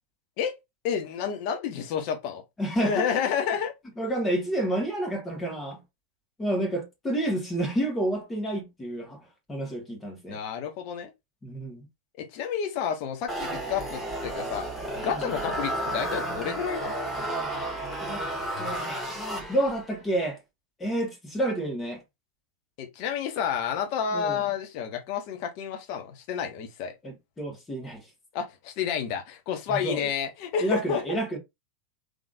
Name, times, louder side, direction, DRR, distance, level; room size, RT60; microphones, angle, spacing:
voice 1, 0.8-2.4 2.8-3.7 10.3-11.1 12.2-16.9 22.8-26.9 28.3-31.2, left 7 dB, 45° left, 1.1 m, -30 dB
voice 2, 2.6-3.2 4.0-5.8 6.4-9.2 9.5-10.4 11.4-11.9 13.5-13.6 15.1-15.3 17.4-20.4 20.8-22.0 24.1-24.4 27.0-28.1 29.7-30.1 30.6-31.4, right 1 dB, 15° left, 1.9 m, -30 dB
sound 1, 13.3-19.9, right 1 dB, ahead, 1.8 m, -32 dB
3.8 x 3.3 x 2.6 m
figure-of-eight pair, 90°, 0 cm